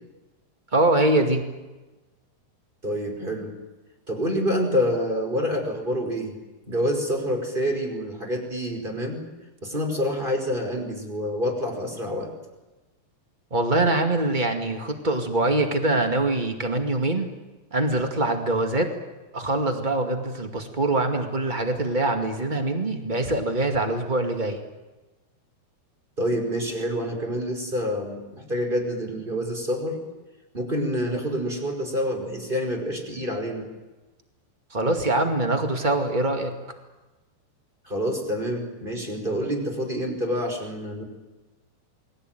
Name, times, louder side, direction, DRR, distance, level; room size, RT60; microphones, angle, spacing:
voice 1, 0.7-1.4 13.5-17.3 17.7-18.9 19.3-24.6 34.7-36.5, right 2 dB, 70° right, 5 dB, 0.4 m, -23 dB
voice 2, 2.8-3.5 4.1-6.4 6.7-9.2 9.6-12.3 26.2-30.0 30.5-33.7 37.8-41.0, equal, 10° right, 4 dB, 5.1 m, -27 dB
29.0 x 21.5 x 9.2 m, 1.1 s
omnidirectional pair, 5.0 m